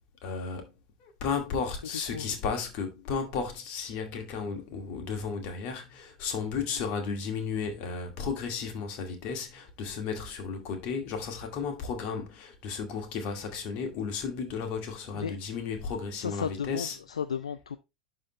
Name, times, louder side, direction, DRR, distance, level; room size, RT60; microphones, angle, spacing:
voice 1, 0.2-0.7 1.0-17.0, left 5 dB, 45° left, 2.1 m, -34 dB
voice 2, 16.1-17.8, left 7 dB, 75° left, 0.3 m, -34 dB
11.0 x 3.8 x 3.0 m
figure-of-eight pair, 85°, 3 cm